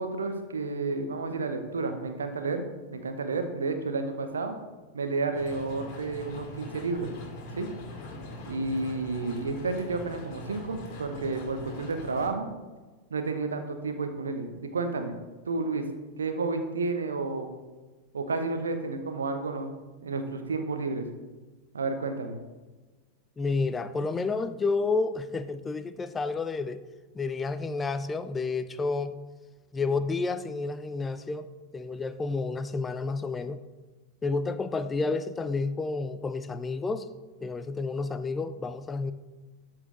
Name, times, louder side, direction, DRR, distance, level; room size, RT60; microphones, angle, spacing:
voice 1, 0.0-4.5 4.9-7.1 7.5-7.7 8.5-12.6 13.1-15.1 15.5-15.9 16.2-17.5 18.1-19.7 20.0-21.1 21.7-22.4, right 3 dB, 70° right, 7 dB, 0.9 m, -31 dB
sound 1, 5.3-12.3, left 1 dB, 40° left, 2.2 m, -42 dB
voice 2, 23.4-26.8 27.1-29.2 29.7-31.5 31.7-33.6 34.2-37.1 37.4-39.1, left 3 dB, 15° left, 12 dB, 0.5 m, -30 dB
12.5 x 4.5 x 3.8 m, 1.3 s
figure-of-eight pair, 90°, 0 cm